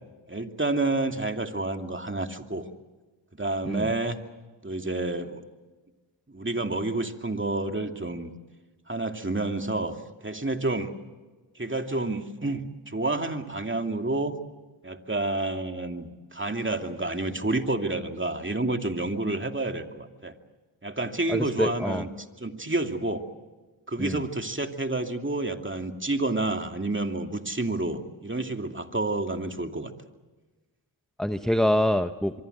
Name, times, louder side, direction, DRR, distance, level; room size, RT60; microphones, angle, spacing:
voice 1, 0.3-2.7 3.3-4.2 4.6-5.4 6.3-8.3 8.9-10.9 11.6-14.3 14.8-20.3 20.8-22.1 22.4-23.2 23.9-29.9, right 2 dB, 25° right, 5 dB, 2.5 m, -29 dB
voice 2, 21.3-22.0 24.0-24.2 31.2-32.3, left 1 dB, ahead, 9 dB, 1.0 m, -25 dB
24.5 x 24.0 x 8.0 m, 1.2 s
cardioid pair, 40°, 49 cm